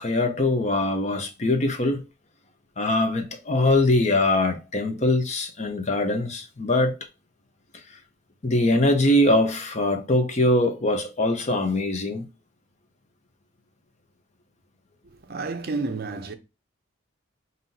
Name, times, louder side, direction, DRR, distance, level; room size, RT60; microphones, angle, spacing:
voice 1, 0.0-2.0 2.8-7.0 8.4-12.2, left 1 dB, 35° left, 0.6 m, -22 dB
voice 2, 15.0-16.4, right 3 dB, 50° right, 0.5 m, -31 dB
5.4 x 2.7 x 2.7 m
head